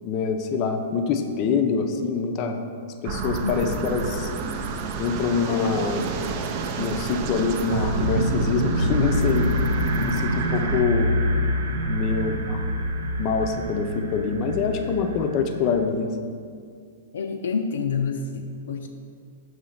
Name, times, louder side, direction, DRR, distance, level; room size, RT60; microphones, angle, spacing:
voice 1, 0.0-2.6 3.0-4.3 5.0-6.1 6.7-9.5 9.9-11.1 11.9-12.7 13.2-16.1, left 5 dB, 30° left, 5 dB, 0.5 m, -25 dB
sound 1, 3.0-10.8, right 4 dB, 35° right, 0.4 m, -30 dB
voice 2, 3.4-3.8 17.1-18.9, left 5 dB, 85° left, 3 dB, 0.4 m, -28 dB
sound 2, 7.7-15.8, equal, 90° right, 0.6 m, -26 dB
6.2 x 3.1 x 5.8 m, 2.2 s
hypercardioid pair, 160°, 0 cm